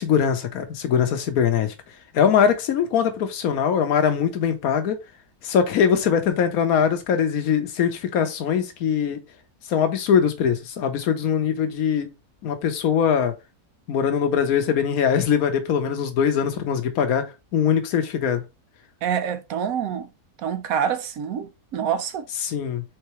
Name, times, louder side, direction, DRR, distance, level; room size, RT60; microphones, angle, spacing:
voice 1, 0.0-5.0 5.4-9.2 9.7-12.1 12.4-13.3 13.9-18.4 22.4-22.8, left 7 dB, 70° left, 1.3 m, -22 dB
voice 2, 19.0-20.1 20.4-22.2, right 8 dB, 70° right, 1.0 m, -26 dB
4.7 x 3.8 x 3.0 m
omnidirectional pair, 1.6 m